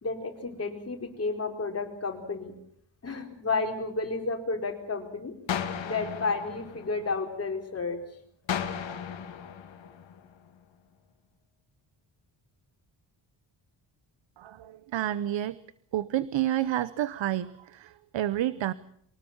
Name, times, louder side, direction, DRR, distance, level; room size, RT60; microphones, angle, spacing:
voice 1, 0.0-2.5 3.0-5.3 5.8-8.0, left 3 dB, 30° left, 3 dB, 4.3 m, -31 dB
sound 1, 5.5-7.5 8.5-10.5, left 8 dB, 70° left, 2.2 m, -35 dB
voice 2, 14.4-15.6 15.9-18.7, right 12 dB, 70° right, 16 dB, 0.9 m, -29 dB
24.5 x 18.5 x 7.3 m, 0.69 s
wide cardioid pair, 140°, 46 cm